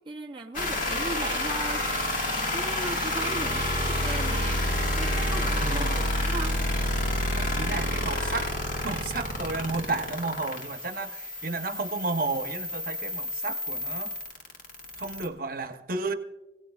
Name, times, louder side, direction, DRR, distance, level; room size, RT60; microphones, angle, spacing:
voice 1, 0.1-1.9 2.2-4.6 4.9-6.6, right 2 dB, 25° right, 0 dB, 0.6 m, -37 dB
sound 1, 0.5-15.3, left 1 dB, 50° left, 1.6 m, -29 dB
voice 2, 5.6-6.1 7.3-8.5 8.8-14.1 15.0-16.1, right 3 dB, 55° right, 8 dB, 0.8 m, -32 dB
24.5 x 17.0 x 2.3 m, 1.1 s
head